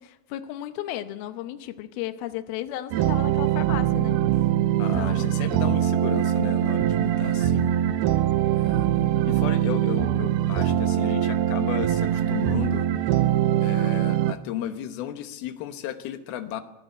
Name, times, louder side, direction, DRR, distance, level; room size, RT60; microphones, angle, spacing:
voice 1, 0.0-4.2 4.9-5.4, left 13 dB, 85° left, 2.1 m, -34 dB
sound 1, 2.9-14.3, right 11 dB, 90° right, 2.2 m, -23 dB
voice 2, 4.8-7.7 8.5-8.9 9.2-12.9 13.6-16.6, left 10 dB, 70° left, 2.6 m, -34 dB
20.0 x 15.0 x 9.4 m
omnidirectional pair, 5.6 m